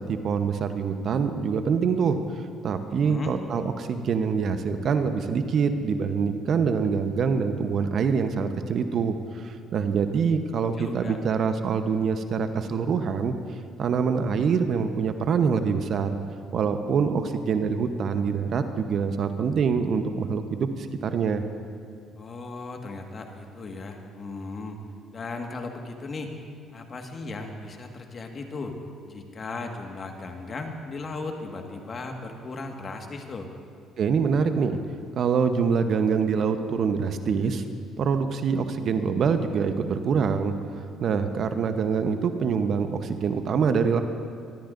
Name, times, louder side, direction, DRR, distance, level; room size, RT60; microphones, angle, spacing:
voice 1, 0.0-13.3 13.8-16.1 16.5-21.4 34.0-34.8 35.2-37.6 38.0-44.0, right 6 dB, 55° right, 8 dB, 0.9 m, -25 dB
voice 2, 2.9-3.3 10.6-11.2 22.2-24.8 25.1-26.3 26.7-28.8 29.0-33.5, left 3 dB, 45° left, 3 dB, 1.7 m, -36 dB
24.0 x 13.5 x 2.6 m, 2.3 s
hypercardioid pair, 60°, 0 cm